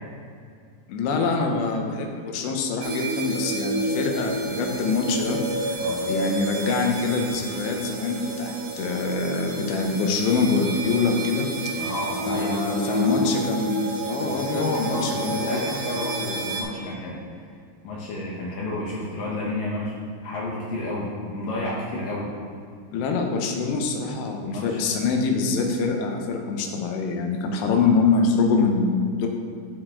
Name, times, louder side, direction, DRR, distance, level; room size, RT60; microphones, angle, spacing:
voice 1, 0.9-11.8 12.3-15.6 22.9-29.3, left 4 dB, 85° left, 2 dB, 3.0 m, -25 dB
sound 1, 2.8-16.6, right 1 dB, 75° right, 2.3 m, -30 dB
voice 2, 11.8-13.3 14.3-17.4 17.8-19.9 20.2-22.3 24.4-25.0 27.7-27.9, left 2 dB, 70° left, -5 dB, 2.3 m, -31 dB
11.5 x 4.8 x 3.7 m, 2.2 s
omnidirectional pair, 4.9 m